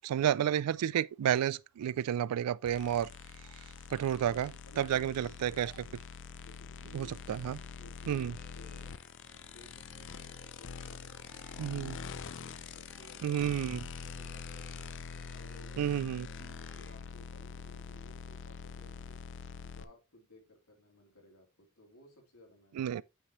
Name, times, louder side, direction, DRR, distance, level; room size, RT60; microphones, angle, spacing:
voice 1, 0.0-3.1 3.9-5.9 6.9-7.6 8.1-8.3 11.6-12.0 13.2-13.8 15.8-16.3 22.8-23.0, right 10 dB, 90° right, 0.3 m, -31 dB
sound 1, 2.6-19.8, left 6 dB, 55° left, 0.5 m, -45 dB
voice 2, 4.6-5.3 6.4-8.8 9.3-11.8 12.2-13.4 13.7-14.9 15.3-16.0 16.3-19.2 19.6-23.0, left 1 dB, 80° left, 3.1 m, -59 dB
sound 2, 7.5-17.1, equal, 5° left, 2.6 m, -62 dB
8.7 x 4.8 x 3.0 m
head